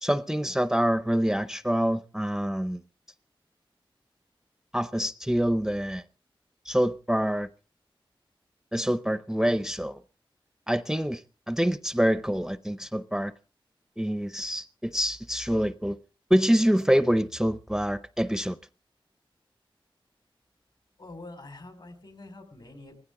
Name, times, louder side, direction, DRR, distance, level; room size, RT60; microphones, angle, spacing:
voice 1, 0.0-2.8 4.7-6.0 6.6-7.5 8.7-10.0 10.7-13.3 14.0-16.0 16.3-18.6, equal, 5° right, 0.6 m, -26 dB
voice 2, 21.0-23.0, left 2 dB, 55° left, 4.9 m, -45 dB
19.0 x 16.0 x 3.8 m
wide cardioid pair, 55°, 9 cm